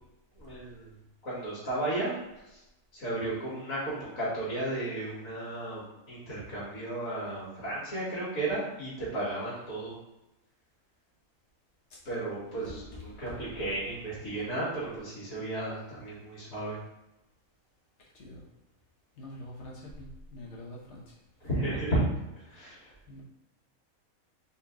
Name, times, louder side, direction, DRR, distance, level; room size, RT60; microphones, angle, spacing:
voice 1, 0.4-0.9 1.2-2.2 2.5-2.6 2.9-9.9 12.1-16.8 21.4-22.0 22.5-22.8, right 2 dB, 70° left, -9 dB, 2.1 m, -34 dB
voice 2, 19.2-21.0 22.5-23.2, left 1 dB, 55° left, -3 dB, 1.3 m, -46 dB
4.4 x 2.9 x 3.6 m, 0.95 s
omnidirectional pair, 1.5 m